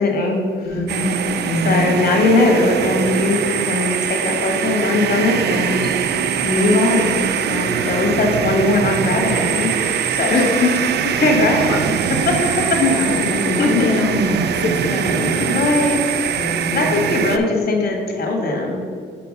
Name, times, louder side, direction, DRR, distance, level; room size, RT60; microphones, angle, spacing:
voice 1, 0.0-0.8 1.6-6.1 6.4-10.5 11.2-11.7 12.3-12.8 13.6-13.9 15.5-16.0 16.7-18.8, left 2 dB, 50° left, 1 dB, 1.8 m, -19 dB
voice 2, 0.6-1.9 10.3-10.7 11.0-11.9 12.8-15.5 16.3-17.0, left 3 dB, 75° left, -1 dB, 1.6 m, -23 dB
sound 1, 0.9-17.4, right 8 dB, 60° right, 0.5 m, -22 dB
6.8 x 4.6 x 5.4 m, 2.1 s
cardioid pair, 90°, 20 cm